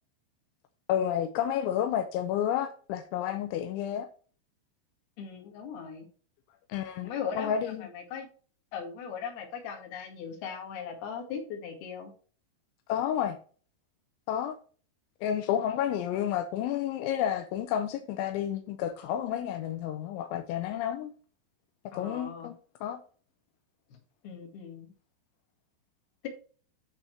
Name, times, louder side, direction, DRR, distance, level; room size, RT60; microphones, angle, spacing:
voice 1, 0.9-4.1 6.7-7.9 12.9-13.4 14.3-14.5 15.2-21.1 21.9-23.0, left 10 dB, 85° left, 3.0 m, -30 dB
voice 2, 5.2-6.1 7.0-7.6 7.8-8.3 8.7-12.1 21.9-22.5 23.9-24.0 24.2-24.9, left 7 dB, 60° left, 3.6 m, -39 dB
12.5 x 4.3 x 4.4 m
omnidirectional pair, 5.7 m